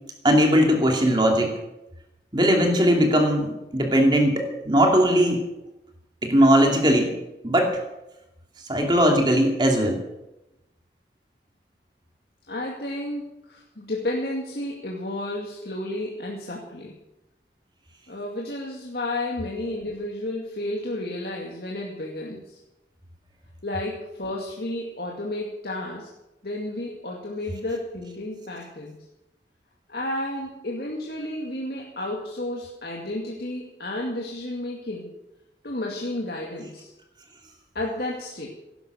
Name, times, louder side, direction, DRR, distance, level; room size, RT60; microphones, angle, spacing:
voice 1, 0.2-1.6 2.3-5.4 6.2-7.2 7.4-7.8 8.7-10.0, equal, 25° right, 2 dB, 2.7 m, -19 dB
voice 2, 12.5-17.0 18.1-22.6 23.6-26.1 26.4-29.0 29.9-35.1 35.6-36.9 37.7-38.5, left 1 dB, 60° left, -2 dB, 2.2 m, -32 dB
17.0 x 11.0 x 6.7 m, 0.94 s
head